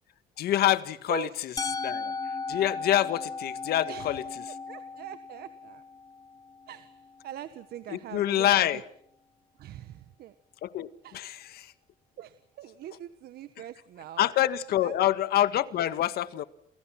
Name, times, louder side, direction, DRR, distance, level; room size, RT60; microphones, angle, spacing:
voice 1, 0.4-1.5 1.8-2.1 2.5-4.2 7.9-8.8 10.6-11.7 14.2-16.4, left 12 dB, 70° left, 1.9 m, -26 dB
Musical instrument, 1.6-7.5, left 4 dB, 20° left, 1.3 m, -37 dB
voice 2, 3.8-5.8 6.7-7.0 7.2-8.8 9.6-10.3 11.0-11.3 12.2-14.3 14.8-15.0, right 11 dB, 65° right, 1.5 m, -42 dB
29.5 x 28.5 x 6.0 m
cardioid pair, 110°, 17 cm